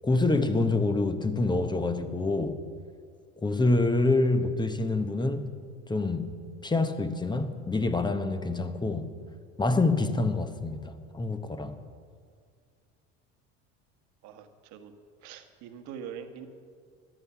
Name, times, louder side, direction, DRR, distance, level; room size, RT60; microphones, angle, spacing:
voice 1, 0.0-2.6 3.4-5.5 5.9-6.3 6.6-9.1 9.6-11.8, left 2 dB, 15° left, 0.9 m, -26 dB
voice 2, 14.2-14.9 15.2-16.5, right 8 dB, 60° right, 1.3 m, -43 dB
14.0 x 10.0 x 5.8 m
hypercardioid pair, 80°, 32 cm